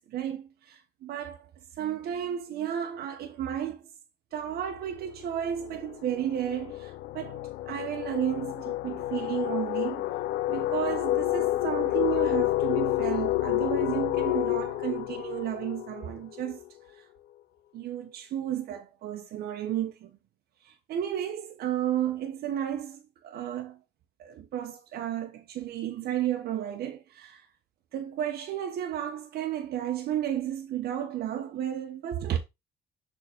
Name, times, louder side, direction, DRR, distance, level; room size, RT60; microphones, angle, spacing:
voice 1, 0.1-1.5 1.8-3.9 4.3-10.0 10.5-16.6 16.9-17.0 17.7-20.1 20.6-23.8 24.2-27.5 27.9-32.4, right 10 dB, 65° right, 1.0 m, -33 dB
sound 1, 4.5-4.8 5.1-16.6, left 16 dB, 80° left, 0.6 m, -29 dB
6.8 x 3.8 x 4.4 m
cardioid pair, 110°, 17 cm